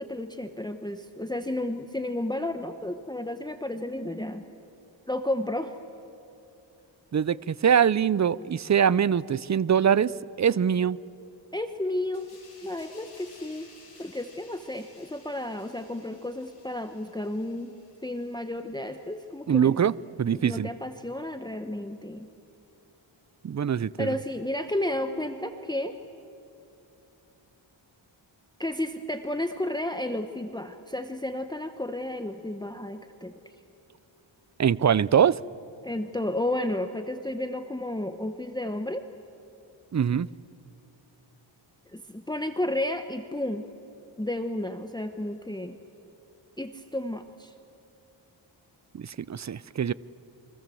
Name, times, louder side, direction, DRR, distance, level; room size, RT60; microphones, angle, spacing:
voice 1, 0.0-4.4 5.1-5.8 11.5-12.3 12.6-13.7 14.0-17.7 18.0-19.8 20.3-22.3 24.0-26.0 28.6-33.5 35.8-39.0 41.9-43.6 44.2-45.8 46.6-47.5, left 1 dB, 10° left, 1.0 m, -32 dB
voice 2, 7.1-10.1 10.4-11.0 19.5-20.7 23.4-24.1 34.6-35.4 39.9-40.3 48.9-49.9, right 8 dB, 35° right, 0.5 m, -23 dB
sound 1, 12.1-19.3 19.7-19.9, left 3 dB, 50° left, 6.4 m, -56 dB
28.5 x 24.5 x 7.7 m
wide cardioid pair, 95°, 47 cm